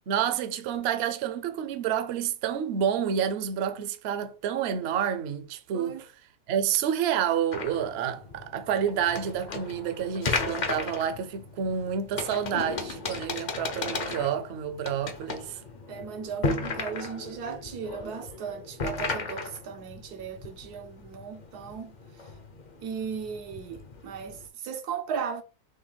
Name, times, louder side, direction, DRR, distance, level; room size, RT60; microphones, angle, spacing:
voice 1, 0.0-6.1 6.5-15.6, right 8 dB, 60° right, 0.7 m, -29 dB
voice 2, 5.7-6.0 15.9-21.9 22.8-25.4, right 6 dB, 85° right, 1.3 m, -36 dB
sound 1, 7.5-24.5, left 3 dB, 50° left, 0.5 m, -35 dB
6.2 x 2.3 x 3.3 m
omnidirectional pair, 1.6 m